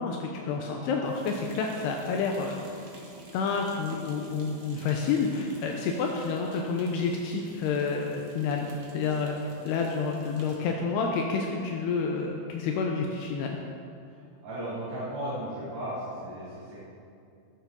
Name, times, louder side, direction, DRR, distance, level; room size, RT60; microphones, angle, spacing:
voice 1, 0.0-2.6 3.3-9.4 9.6-13.6, left 5 dB, 80° left, 1 dB, 2.8 m, -29 dB
sound 1, 1.0-10.7, right 2 dB, 50° right, 2.4 m, -50 dB
voice 2, 14.4-16.8, right 1 dB, 75° right, -13 dB, 6.0 m, -35 dB
19.0 x 7.1 x 5.2 m, 2.4 s
omnidirectional pair, 5.0 m